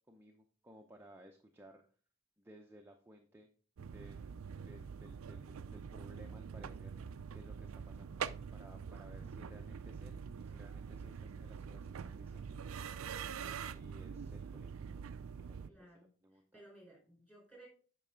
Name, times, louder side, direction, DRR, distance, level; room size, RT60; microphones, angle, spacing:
voice 1, 0.1-1.8 2.4-3.5 3.8-4.3 4.7-7.0 7.3-8.1 8.5-13.0 13.4-14.8 15.2-16.6, equal, 10° right, 2 dB, 0.7 m, -59 dB
sound 1, 3.8-15.7, right 6 dB, 75° right, 0.4 m, -45 dB
voice 2, 15.7-16.1 16.5-17.7, right 1 dB, 10° left, -2 dB, 4.3 m, -58 dB
8.9 x 5.3 x 3.8 m, 0.40 s
head